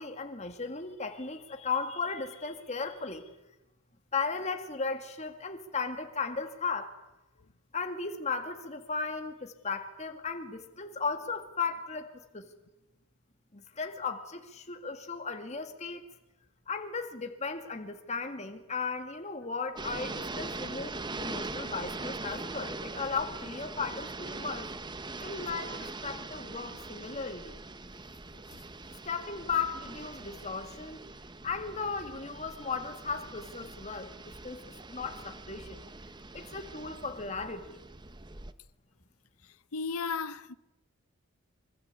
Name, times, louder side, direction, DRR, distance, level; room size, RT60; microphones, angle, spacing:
voice 1, 0.0-3.3 4.1-6.9 7.7-12.5 13.5-16.0 16.7-24.7 25.2-27.5 29.0-31.1 31.4-34.6 34.9-35.8 36.3-37.8, left 4 dB, 30° left, 2.2 m, -36 dB
sound 1, 19.8-38.5, right 3 dB, 20° right, 1.0 m, -42 dB
voice 2, 39.7-40.5, left 5 dB, 75° left, 0.9 m, -34 dB
25.5 x 24.5 x 8.3 m
head